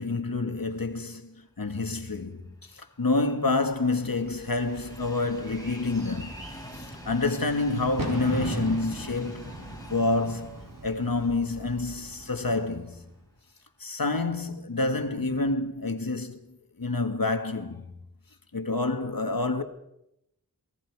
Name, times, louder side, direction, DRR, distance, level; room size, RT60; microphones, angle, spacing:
voice 1, 0.0-6.3 6.7-9.5 9.9-13.1 13.8-16.4 16.8-17.9 18.5-19.6, left 3 dB, 75° left, 1.8 m, -28 dB
Train, 2.6-12.7 13.1-13.2 14.3-14.4, left 1 dB, 10° left, 4.3 m, -47 dB
Bird / Fireworks, 4.0-13.2, right 1 dB, 75° right, 4.3 m, -39 dB
27.5 x 20.0 x 4.8 m
wide cardioid pair, 45°, 34 cm